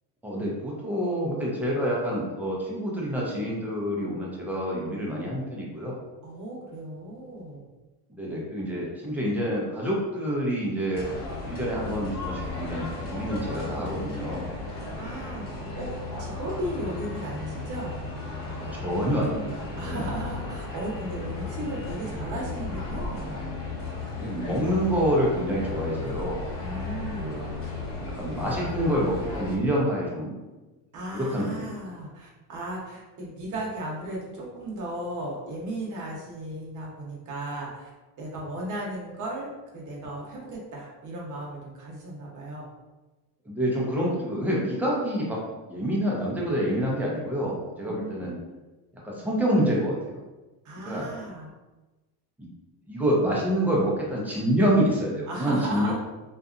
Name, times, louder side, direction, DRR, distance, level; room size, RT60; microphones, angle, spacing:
voice 1, 0.2-6.0 8.1-11.1 11.4-14.5 18.6-20.1 24.2-26.4 27.2-27.4 28.0-30.4 31.1-31.7 43.4-45.4 45.7-48.4 49.0-50.2 50.9-51.1 52.4-52.5 52.9-55.9, equal, 5° right, -5 dB, 0.5 m, -27 dB
voice 2, 6.2-7.7 14.8-15.4 15.8-15.9 16.2-18.0 19.8-23.4 26.6-27.4 30.9-37.9 38.2-42.7 47.7-48.3 50.6-51.5 55.3-55.9, right 1 dB, 40° right, -3 dB, 0.9 m, -36 dB
sound 1, 10.9-29.6, left 3 dB, 30° left, 1.1 m, -35 dB
2.6 x 2.5 x 2.4 m, 1.1 s
cardioid pair, 120°, 47 cm